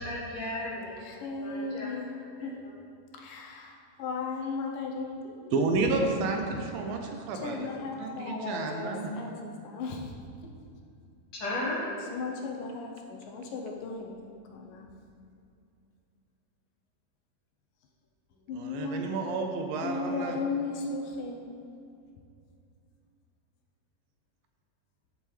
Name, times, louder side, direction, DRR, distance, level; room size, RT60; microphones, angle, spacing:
voice 1, 0.0-1.9 2.4-2.5 11.3-11.9, left 1 dB, 50° left, -6 dB, 2.0 m, -35 dB
voice 2, 1.0-2.1 2.4-2.6 3.1-5.5 6.5-6.6 7.3-10.2 12.1-14.9 18.5-19.0 19.8-21.6, left 4 dB, 75° left, 1 dB, 2.3 m, -36 dB
voice 3, 5.5-7.7 8.0-9.1 18.5-20.4, right 3 dB, 80° right, 3 dB, 2.5 m, -30 dB
13.5 x 7.2 x 3.3 m, 2.5 s
omnidirectional pair, 4.1 m